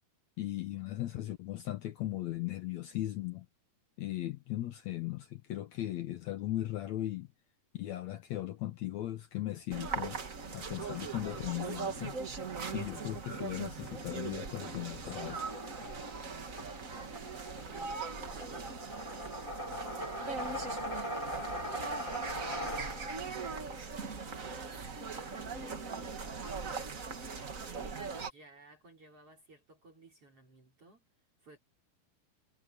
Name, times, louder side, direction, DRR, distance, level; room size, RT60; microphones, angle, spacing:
voice 1, 0.4-3.5 4.0-7.3 7.7-10.2 10.5-12.2 12.7-15.4, left 14 dB, 80° left, 1.6 m, -37 dB
sound 1, 9.7-28.3, right 5 dB, 60° right, 0.8 m, -40 dB
sound 2, 15.0-23.3, equal, 15° left, 1.0 m, -41 dB
voice 2, 17.6-22.1 22.6-27.2 27.6-31.1 31.4-31.6, right 2 dB, 35° right, 5.6 m, -57 dB
omnidirectional pair, 4.4 m